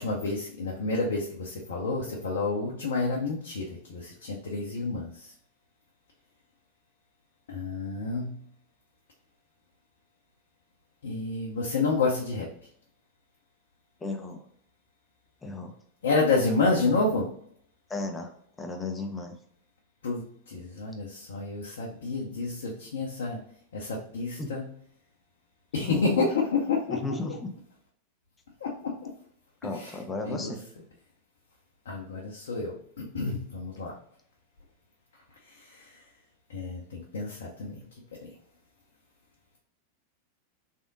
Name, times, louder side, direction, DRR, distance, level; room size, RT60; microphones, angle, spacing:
voice 1, 0.0-5.3 7.5-8.4 11.0-12.5 16.0-17.3 20.0-24.7 25.7-27.0 28.6-29.1 29.7-30.0 30.2-30.6 31.9-34.0 35.5-36.0 36.5-37.8 38.1-38.3, left 3 dB, 65° left, -2 dB, 0.6 m, -29 dB
voice 2, 14.0-14.4 15.4-15.7 17.9-18.3 18.6-19.4 24.4-24.6 25.8-26.3 26.9-27.5 29.6-30.6, left 3 dB, 15° left, 4 dB, 0.6 m, -34 dB
3.5 x 3.4 x 2.6 m, 0.67 s
figure-of-eight pair, 90°, 0 cm